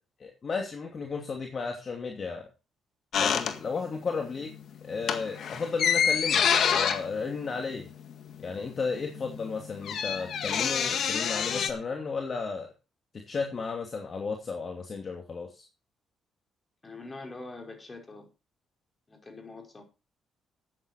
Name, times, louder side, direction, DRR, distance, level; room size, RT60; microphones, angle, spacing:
voice 1, 0.2-2.5 3.2-4.5 4.8-7.9 8.4-12.7 13.1-15.6, left 4 dB, 45° left, 2 dB, 2.6 m, -34 dB
sound 1, 3.1-4.1 4.4-4.6 4.9-8.4 8.7-8.8 9.0-11.7, left 7 dB, 65° left, 1.8 m, -27 dB
voice 2, 16.8-18.3 19.1-19.8, left 3 dB, 25° left, 2 dB, 5.3 m, -44 dB
13.5 x 9.3 x 4.5 m, 0.30 s
cardioid pair, 90°, 0 cm